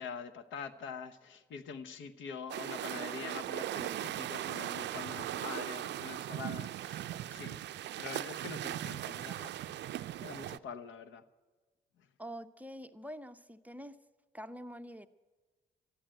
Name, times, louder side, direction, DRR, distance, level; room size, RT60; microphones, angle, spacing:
voice 1, 0.0-7.6 8.0-11.2, left 6 dB, 75° left, 13 dB, 0.9 m, -45 dB
sound 1, 2.5-10.6, right 12 dB, 60° right, 0.4 m, -39 dB
voice 2, 12.2-14.0 14.3-15.1, equal, 10° right, 10 dB, 0.5 m, -45 dB
12.5 x 10.0 x 9.1 m, 1.3 s
cardioid pair, 90°, 20 cm